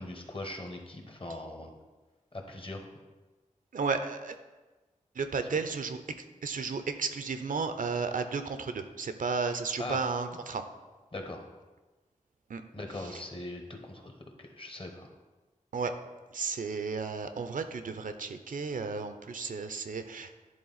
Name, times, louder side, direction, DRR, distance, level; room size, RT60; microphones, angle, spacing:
voice 1, 0.0-1.7 2.3-2.8 9.8-10.0 11.1-11.5 12.7-15.1, left 2 dB, 40° left, 4 dB, 1.0 m, -40 dB
voice 2, 3.7-4.4 5.1-6.0 6.4-10.6 12.5-12.6 13.0-13.2 15.7-15.9 16.3-20.3, right 4 dB, 80° right, 9 dB, 0.5 m, -33 dB
10.5 x 3.7 x 4.0 m, 1.2 s
wide cardioid pair, 75°, 14 cm